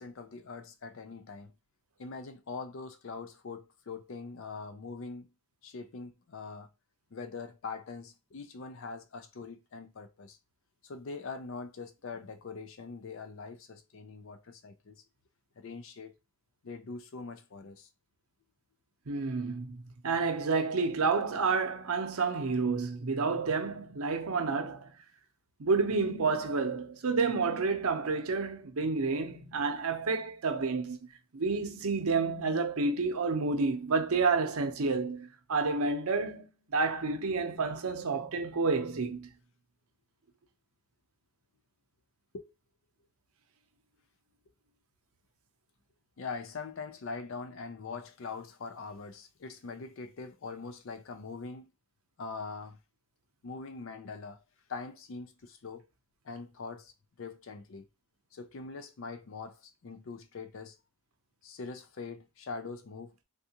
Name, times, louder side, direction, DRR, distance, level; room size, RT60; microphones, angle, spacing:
voice 1, 0.0-1.5 2.0-5.3 5.6-6.7 7.1-10.4 10.8-15.0 15.6-16.1 16.6-17.9 42.3-42.5 46.2-51.7 52.2-52.8 53.4-54.4 54.7-55.9 56.2-56.9 57.2-57.9 58.3-60.8 61.4-63.1, left 4 dB, 60° left, 0.4 m, -42 dB
voice 2, 19.1-24.9 25.6-31.0 31.3-39.3, right 4 dB, 80° right, 0.7 m, -30 dB
3.6 x 2.3 x 2.9 m
head